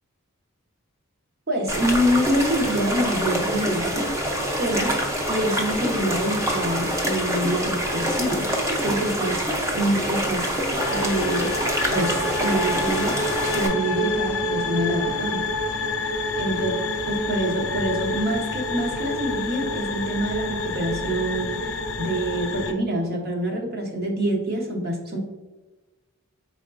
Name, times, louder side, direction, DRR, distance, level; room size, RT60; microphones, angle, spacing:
voice 1, 1.5-4.1 4.6-5.0 5.3-11.6 11.9-13.1 13.5-15.4 16.4-16.7 17.1-25.2, right 1 dB, 45° right, 1 dB, 0.8 m, -26 dB
sound 1, 1.7-13.7, equal, 15° right, 0.5 m, -26 dB
sound 2, 10.8-22.7, left 2 dB, 65° left, 0.4 m, -28 dB
4.6 x 3.6 x 2.5 m, 1.2 s
head